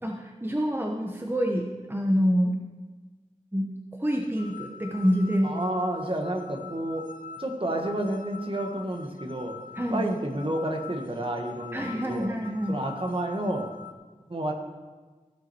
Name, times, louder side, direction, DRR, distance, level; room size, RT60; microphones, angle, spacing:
voice 1, 0.0-2.6 3.5-3.7 4.0-5.5 9.8-10.1 11.7-12.8, equal, 15° right, 1 dB, 1.1 m, -26 dB
sound 1, 4.1-13.9, left 7 dB, 85° left, 0.6 m, -45 dB
voice 2, 5.4-7.0 7.4-9.6 9.9-12.3 12.7-13.7 14.3-14.5, right 1 dB, 40° right, 2 dB, 1.7 m, -30 dB
16.5 x 6.1 x 4.5 m, 1.3 s
wide cardioid pair, 45°, 14 cm